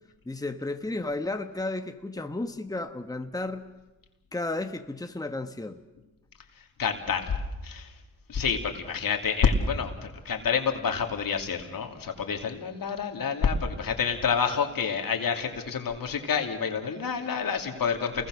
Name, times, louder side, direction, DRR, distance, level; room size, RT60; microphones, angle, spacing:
voice 1, 0.2-3.6 4.3-5.8, left 2 dB, 10° left, 6 dB, 1.3 m, -33 dB
voice 2, 6.8-7.3 7.6-7.9 8.3-9.9 10.2-18.3, left 6 dB, 70° left, 4 dB, 2.8 m, -28 dB
28.5 x 21.0 x 6.4 m, 1.1 s
cardioid pair, 60°, 35 cm